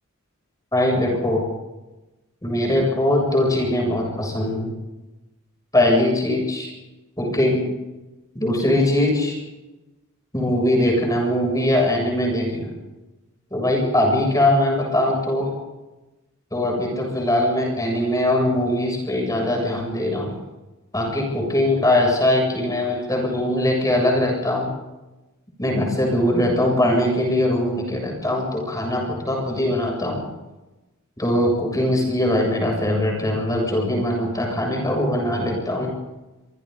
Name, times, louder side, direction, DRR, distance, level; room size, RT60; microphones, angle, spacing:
voice 1, 0.7-1.4 2.4-4.7 5.7-6.7 7.2-7.7 8.4-9.4 10.3-12.8 13.5-15.5 16.5-20.3 20.9-24.7 25.6-30.2 31.2-35.9, left 1 dB, 15° left, 0 dB, 7.6 m, -21 dB
27.0 x 25.0 x 4.1 m, 1.0 s
head